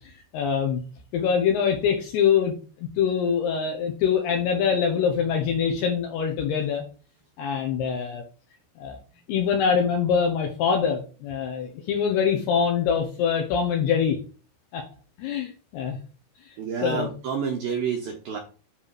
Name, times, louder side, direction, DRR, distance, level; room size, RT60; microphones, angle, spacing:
voice 1, 0.3-0.8 1.1-2.5 3.0-6.8 7.4-8.2 8.8-9.0 9.3-14.2 14.7-14.8 15.2-16.0 16.8-17.1, left 7 dB, 75° left, 3 dB, 2.6 m, -24 dB
voice 2, 16.6-18.4, right 6 dB, 75° right, 1 dB, 2.2 m, -29 dB
10.0 x 3.4 x 4.7 m, 0.36 s
omnidirectional pair, 5.6 m